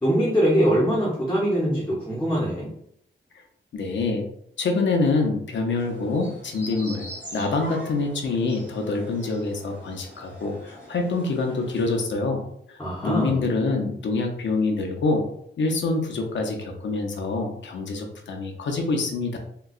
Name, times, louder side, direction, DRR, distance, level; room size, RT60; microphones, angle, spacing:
voice 1, 0.0-2.7 12.8-13.4, equal, 10° left, -6 dB, 0.8 m, -22 dB
voice 2, 3.7-4.2 4.6-7.1 7.3-12.4 12.7-15.2 15.6-19.4, left 3 dB, 70° left, 3 dB, 0.6 m, -26 dB
sound 1, 5.8-12.0, equal, 65° right, 1.5 m, -43 dB
3.8 x 2.2 x 2.4 m, 0.71 s
wide cardioid pair, 135°, 20 cm